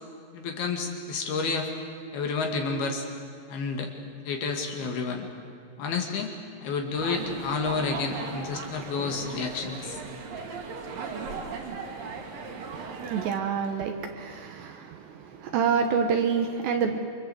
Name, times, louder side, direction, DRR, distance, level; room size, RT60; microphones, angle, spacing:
voice 1, 0.3-1.7 2.1-3.1 3.5-3.9 4.3-5.3 5.8-6.3 6.6-10.0, left 4 dB, 60° left, 3 dB, 3.8 m, -30 dB
sound 1, 6.9-13.3, right 4 dB, 55° right, 3.7 m, -37 dB
voice 2, 13.1-14.9 15.4-17.0, right 6 dB, 75° right, 4 dB, 3.3 m, -27 dB
28.0 x 25.0 x 7.9 m, 2.2 s
omnidirectional pair, 5.2 m